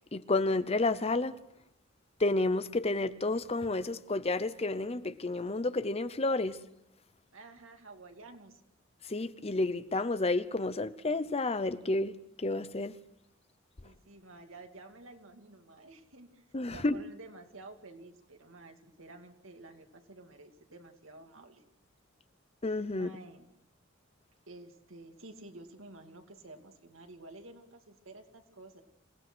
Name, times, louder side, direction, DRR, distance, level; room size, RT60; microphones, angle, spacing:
voice 1, 0.1-1.4 2.2-6.6 9.0-13.0 16.5-17.0 22.6-23.1, left 2 dB, 30° left, 0.8 m, -30 dB
voice 2, 7.3-8.6 13.8-16.4 16.7-21.6 22.9-23.5 24.5-28.8, right 2 dB, 85° right, 2.5 m, -51 dB
27.0 x 17.5 x 6.2 m
head